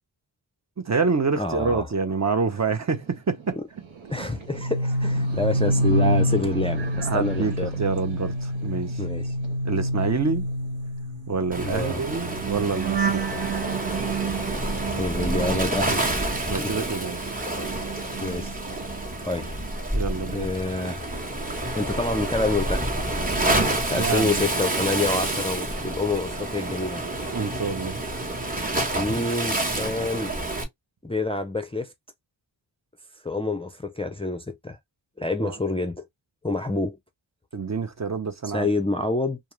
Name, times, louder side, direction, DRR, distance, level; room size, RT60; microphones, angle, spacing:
voice 1, 0.8-3.6 7.0-9.0 9.6-10.5 11.3-13.2 16.5-17.2 19.9-20.5 23.9-24.5 27.3-28.0 35.4-35.6 37.5-38.7, right 4 dB, 35° right, 0.6 m, -27 dB
voice 2, 1.4-1.9 4.1-7.7 9.0-9.3 11.6-12.0 15.0-16.1 16.3-16.7 18.2-18.6 19.2-19.6 20.2-21.1 21.8-22.9 23.9-27.0 28.9-30.4 31.0-31.9 33.2-34.8 35.2-36.1 36.4-37.0 38.5-39.4, left 2 dB, 15° left, 0.4 m, -27 dB
sound 1, 2.7-13.0, right 6 dB, 90° right, 0.9 m, -42 dB
sound 2, 4.4-16.7 17.0-19.1 19.4-19.7, right 1 dB, 60° right, 0.9 m, -28 dB
Waves surf, 11.5-30.6, right 1 dB, 20° right, 1.0 m, -28 dB
2.4 x 2.3 x 3.0 m
wide cardioid pair, 55°, 46 cm